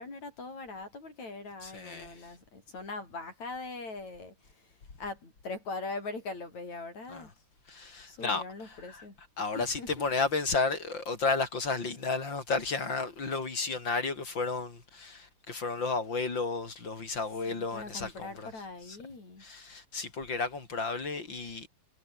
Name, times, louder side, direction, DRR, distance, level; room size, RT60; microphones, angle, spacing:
voice 1, 0.0-4.7 5.0-7.3 8.1-9.2 9.5-10.1 17.5-19.4, left 3 dB, 45° left, 8.4 m, -41 dB
voice 2, 1.6-2.3 7.1-7.3 7.7-9.0 9.4-18.5 18.9-19.0 19.4-21.7, left 4 dB, 30° left, 4.0 m, -33 dB
omnidirectional pair, 4.5 m